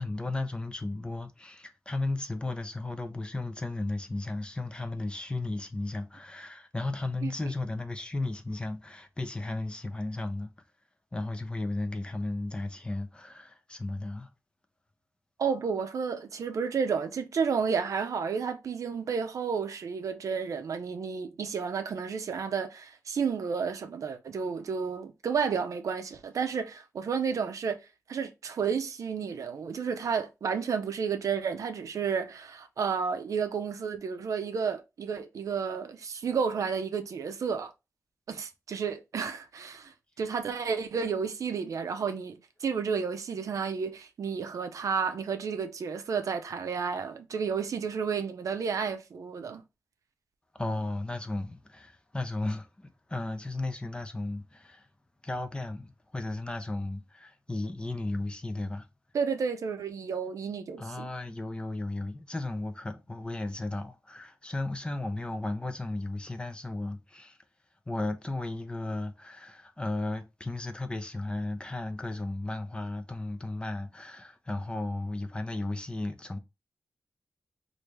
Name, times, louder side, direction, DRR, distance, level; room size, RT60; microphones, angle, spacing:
voice 1, 0.0-10.5 11.1-14.3 50.5-54.9 55.2-58.9 60.8-67.4 67.9-76.4, left 2 dB, 15° left, 0.5 m, -35 dB
voice 2, 15.4-27.8 28.1-37.7 38.3-49.6 59.1-61.1, right 6 dB, 70° right, 0.5 m, -31 dB
3.2 x 2.6 x 3.1 m
wide cardioid pair, 90°, 6 cm